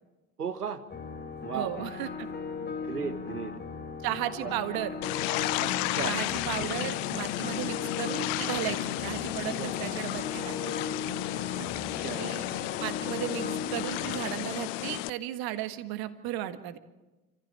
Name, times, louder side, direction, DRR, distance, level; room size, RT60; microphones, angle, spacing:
voice 1, 0.4-0.8 1.4-1.7 2.6-3.5 4.4-4.5 5.6-6.2 9.5-9.8 11.6-12.4, right 6 dB, 85° right, 10 dB, 1.4 m, -36 dB
sound 1, 0.9-14.3, left 4 dB, 20° left, 2.1 m, -38 dB
voice 2, 1.5-2.3 4.0-5.0 6.0-10.7 12.2-12.5 12.8-16.8, right 13 dB, 50° right, 10 dB, 1.7 m, -35 dB
sound 2, 5.0-15.1, left 18 dB, 55° left, 0.7 m, -33 dB
28.5 x 15.0 x 7.5 m, 1.1 s
figure-of-eight pair, 65°, 45 cm